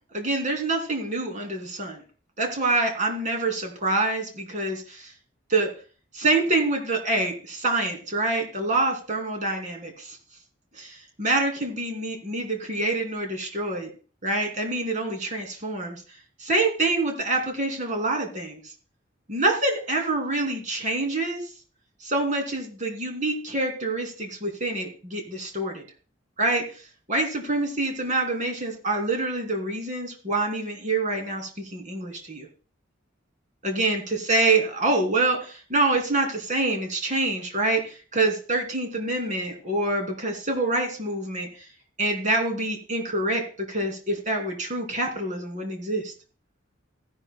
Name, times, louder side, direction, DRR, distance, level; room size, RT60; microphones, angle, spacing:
voice 1, 0.1-2.0 2.4-5.1 5.5-5.7 6.1-10.2 10.7-13.9 14.2-16.0 16.4-18.6 19.3-21.4 22.0-25.8 26.4-26.6 27.1-32.5 33.6-41.7 42.0-46.1, right 2 dB, 40° right, 4 dB, 2.7 m, -26 dB
15.5 x 10.5 x 2.2 m, 0.37 s
head